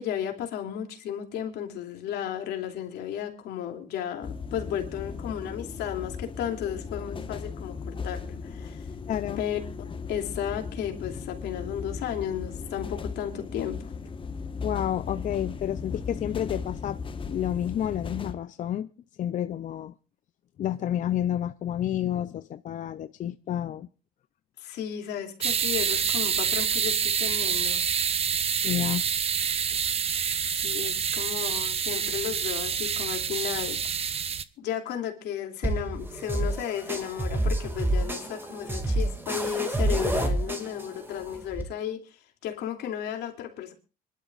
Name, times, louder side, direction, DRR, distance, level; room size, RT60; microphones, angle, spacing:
voice 1, 0.0-8.8 9.4-9.6 10.1-13.9 24.6-27.9 30.4-34.1 34.6-43.7, left 10 dB, 80° left, 2.8 m, -34 dB
sound 1, 4.2-18.3, left 5 dB, 30° left, 1.3 m, -37 dB
voice 2, 9.1-9.4 14.6-17.0 17.3-18.9 19.2-19.9 20.6-23.9 28.6-29.0, left 11 dB, 50° left, 0.6 m, -30 dB
sound 2, 25.4-34.4, right 7 dB, 35° right, 0.8 m, -27 dB
sound 3, 35.6-41.6, right 1 dB, 10° right, 2.3 m, -29 dB
25.5 x 12.0 x 2.5 m
cardioid pair, 110°, 17 cm